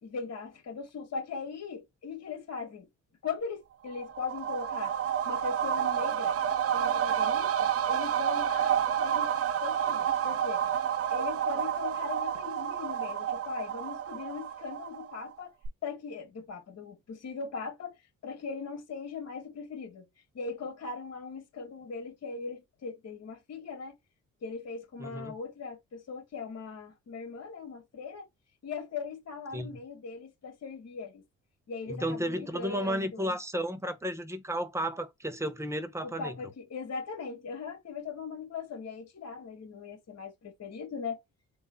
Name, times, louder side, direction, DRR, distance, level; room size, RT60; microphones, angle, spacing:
voice 1, 0.0-2.9 3.2-4.9 5.3-6.4 6.7-9.3 9.6-10.7 11.1-15.5 15.8-17.9 18.2-20.1 20.3-23.9 24.4-28.3 28.6-31.2 31.7-33.4 36.0-41.2, left 5 dB, 60° left, 2.3 m, -39 dB
sound 1, 3.9-15.3 15.6-15.7, right 9 dB, 50° right, 0.7 m, -30 dB
voice 2, 25.0-25.3 29.5-29.7 31.9-36.3, equal, 10° right, 1.2 m, -33 dB
3.8 x 2.4 x 4.0 m
cardioid pair, 90°, 30 cm